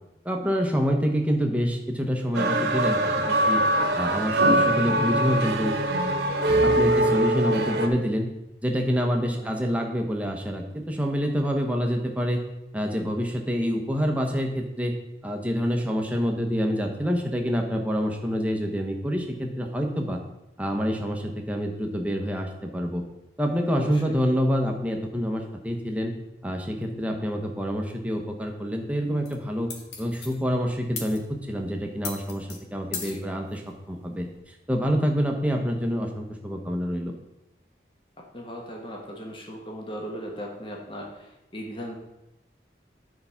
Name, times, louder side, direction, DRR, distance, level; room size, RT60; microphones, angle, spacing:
voice 1, 0.2-3.6 4.0-5.7 6.6-8.3 8.6-12.4 12.7-15.0 15.2-20.2 20.6-23.0 23.4-26.1 26.4-29.7 30.0-33.6 33.9-37.1, equal, 10° right, 2 dB, 0.9 m, -27 dB
sound 1, 2.3-7.9, right 1 dB, 75° right, 1.3 m, -23 dB
voice 2, 23.7-24.2 33.0-33.2 38.3-41.9, equal, 30° left, 0 dB, 1.2 m, -38 dB
sound 2, 29.3-34.4, left 5 dB, 80° left, 1.4 m, -41 dB
9.4 x 4.7 x 5.7 m, 0.93 s
head